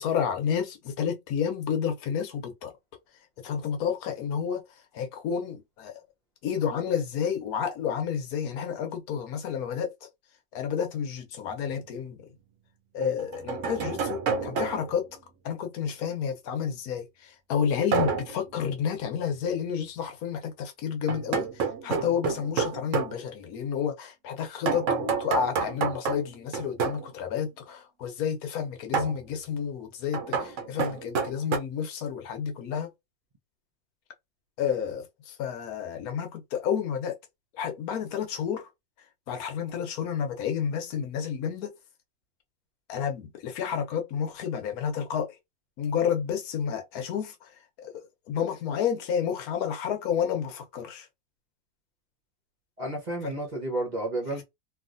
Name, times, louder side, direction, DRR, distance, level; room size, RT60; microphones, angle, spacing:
voice 1, 0.0-2.7 3.4-4.6 4.9-6.0 6.4-10.1 10.5-12.2 12.9-15.1 15.4-21.5 21.8-32.9 34.6-37.2 37.5-38.7 39.3-41.7 42.9-45.4 45.8-47.5 47.8-51.1 53.2-53.3, left 7 dB, 75° left, 1.2 m, -30 dB
sound 1, 11.7-11.8 13.0-15.0 17.9-18.4 21.1-23.2 24.7-27.1 28.9-29.2 30.1-31.6, right 5 dB, 60° right, 1.0 m, -29 dB
voice 2, 52.8-54.4, right 1 dB, 35° right, 0.9 m, -32 dB
3.1 x 2.4 x 2.5 m
omnidirectional pair, 1.6 m